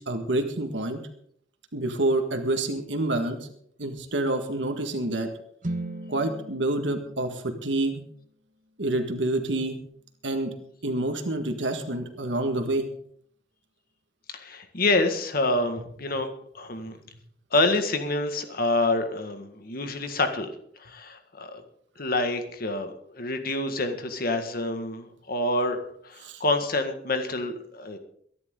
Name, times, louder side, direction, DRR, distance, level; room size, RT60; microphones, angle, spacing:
voice 1, 0.1-1.0 1.7-3.5 3.8-5.3 6.1-8.0 8.8-9.8 10.2-10.5 10.8-12.9 26.2-26.4, right 2 dB, 85° right, 6 dB, 1.8 m, -27 dB
sound 1, 5.6-9.7, right 1 dB, 45° right, 1.3 m, -39 dB
voice 2, 14.3-17.0 17.5-20.5 20.8-21.6 22.0-25.8 26.0-28.0, left 2 dB, 55° left, 7 dB, 1.8 m, -27 dB
22.5 x 11.0 x 3.8 m, 0.66 s
head